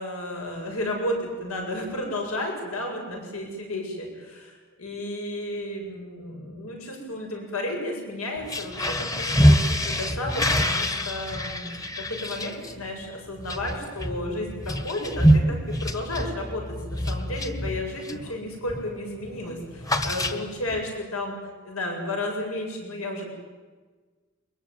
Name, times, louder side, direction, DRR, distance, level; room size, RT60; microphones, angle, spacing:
voice 1, 0.0-21.4 21.6-23.3, left 1 dB, 85° left, 1 dB, 8.0 m, -32 dB
sound 1, 8.4-18.3 18.7-19.0 19.2-20.8, equal, 15° left, 1.4 m, -25 dB
23.5 x 21.5 x 9.6 m, 1.4 s
head